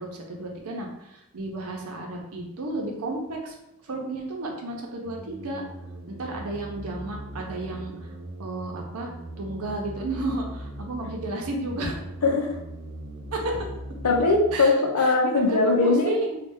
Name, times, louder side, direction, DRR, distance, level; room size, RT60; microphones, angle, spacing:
voice 1, 0.0-3.5 3.8-5.6 6.1-8.1 8.4-9.1 9.4-12.0 13.3-13.7 14.5-14.7 15.0-15.1 15.5-16.4, right 2 dB, 85° right, 1 dB, 0.7 m, -32 dB
sound 1, 5.0-14.6, right 1 dB, 55° right, 0.5 m, -39 dB
voice 2, 12.2-12.6 14.0-16.2, left 3 dB, 80° left, 2 dB, 0.6 m, -21 dB
3.2 x 2.3 x 3.5 m, 0.85 s
head